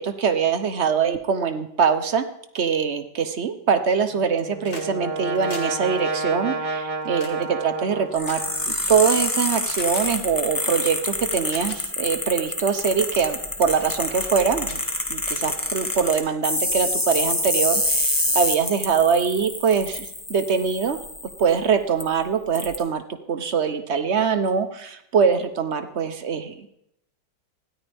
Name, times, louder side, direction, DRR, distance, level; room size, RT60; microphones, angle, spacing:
voice 1, 0.0-2.2 2.5-7.4 7.6-14.8 15.1-21.0 21.4-23.0 23.3-26.7, right 6 dB, 45° right, 9 dB, 1.0 m, -23 dB
Brass instrument, 4.1-8.9, right 3 dB, 30° right, 0.7 m, -30 dB
sound 1, 4.2-4.9 5.2-9.1 9.7-10.1 10.9-11.0 11.4-11.8 12.4-12.7 13.2-13.5 13.8-13.9 14.3-14.4 14.6-15.6 16.7-16.8, left 3 dB, 70° left, 2.6 m, -43 dB
sound 2, 8.1-21.5 22.0-22.1 22.5-22.8, left 1 dB, 10° left, 1.6 m, -27 dB
19.5 x 13.5 x 3.5 m, 0.78 s
omnidirectional pair, 1.9 m